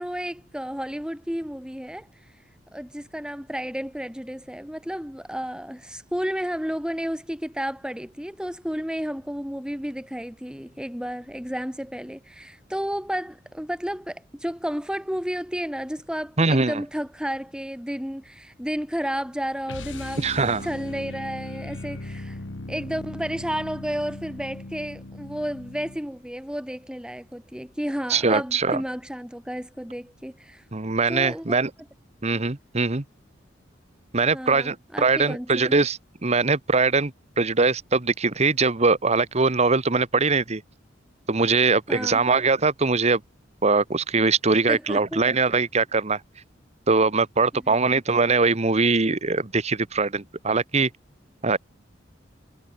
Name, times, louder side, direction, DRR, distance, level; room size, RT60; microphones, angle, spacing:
voice 1, 0.0-2.1 2.7-20.4 20.6-22.4 22.7-30.6 31.1-31.6 34.3-35.8 41.9-42.2 44.7-45.3 47.6-47.9, equal, 5° right, 4.0 m, -32 dB
voice 2, 16.4-16.8 20.2-20.7 28.1-28.8 30.7-31.7 32.2-33.0 34.1-40.6 41.3-43.2 43.6-46.2 46.9-50.9 51.4-51.6, right 4 dB, 35° right, 1.2 m, -22 dB
sound 1, 19.7-26.1, left 2 dB, 85° left, 1.5 m, -38 dB
head